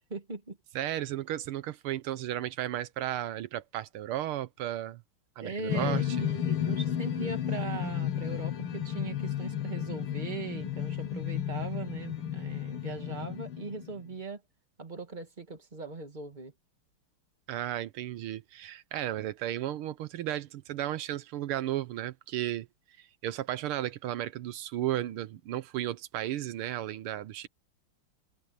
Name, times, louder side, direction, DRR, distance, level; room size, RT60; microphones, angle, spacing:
voice 1, 0.1-0.6 5.4-14.4 14.8-16.5, right 3 dB, 20° right, 2.3 m, -39 dB
voice 2, 0.7-5.0 5.4-6.2 17.5-22.7 23.0-27.5, right 13 dB, 85° right, 1.7 m, -34 dB
sound 1, 5.7-14.1, left 9 dB, 80° left, 2.3 m, -33 dB
omnidirectional pair, 2.4 m